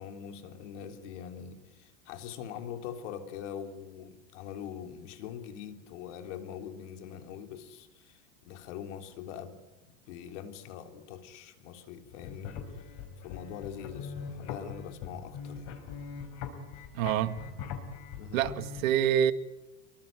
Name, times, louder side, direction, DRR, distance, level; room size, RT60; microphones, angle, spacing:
voice 1, 0.0-9.6 10.1-12.8 13.2-15.7 18.2-18.5, left 8 dB, 65° left, 3.5 m, -43 dB
sound 1, 12.0-18.8, left 6 dB, 40° left, 4.5 m, -42 dB
voice 2, 16.9-17.4 18.3-19.3, right 10 dB, 85° right, 2.0 m, -26 dB
26.5 x 23.5 x 9.2 m
supercardioid pair, 170°, 39 cm